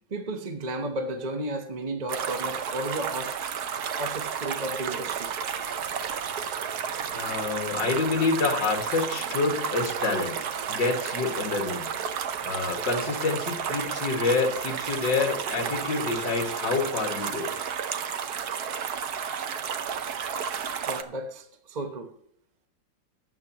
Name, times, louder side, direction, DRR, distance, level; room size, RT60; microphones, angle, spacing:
voice 1, 0.1-3.7 4.0-5.3 5.6-5.7 20.9-22.2, right 1 dB, 35° right, 0.7 m, -33 dB
sound 1, 2.1-21.0, right 7 dB, 60° right, 1.3 m, -32 dB
voice 2, 7.1-10.4 10.7-17.5, left 4 dB, 70° left, 2.4 m, -28 dB
18.5 x 8.5 x 2.9 m
omnidirectional pair, 2.0 m